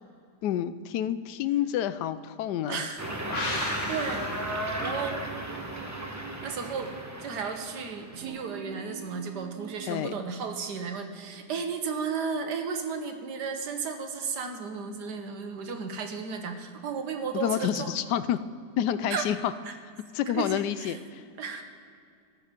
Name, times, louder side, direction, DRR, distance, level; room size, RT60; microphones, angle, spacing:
voice 1, 0.4-2.9 9.9-10.1 17.3-18.4 18.8-19.5 20.1-21.2, left 10 dB, 85° left, 13 dB, 1.2 m, -29 dB
voice 2, 2.6-3.1 3.5-4.3 4.8-5.2 6.4-6.9 7.2-18.0 19.1-19.3 19.6-19.7 20.2-21.0 21.4-21.6, right 5 dB, 80° right, 5 dB, 1.7 m, -34 dB
sound 1, 3.0-8.2, right 1 dB, 10° right, 0.9 m, -35 dB
sound 2, 3.3-6.8 7.1-7.2, left 2 dB, 45° left, 1.8 m, -37 dB
sound 3, 4.7-7.1 8.1-9.9, right 8 dB, 60° right, 1.2 m, -44 dB
13.5 x 10.5 x 5.2 m, 2.4 s
omnidirectional pair, 1.8 m